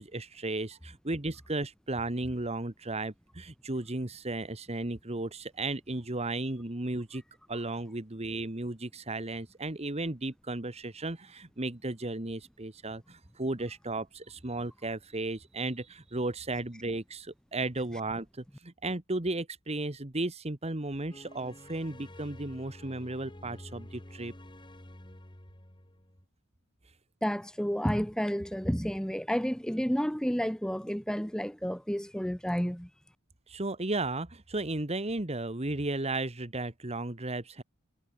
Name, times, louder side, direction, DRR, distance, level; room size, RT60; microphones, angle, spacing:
voice 1, 0.0-7.2 7.5-24.3 33.5-37.6, right 2 dB, 30° right, 1.6 m, -34 dB
sound 1, 21.1-26.3, left 1 dB, 20° left, 3.0 m, -49 dB
voice 2, 27.2-32.9, equal, 5° left, 1.9 m, -31 dB
head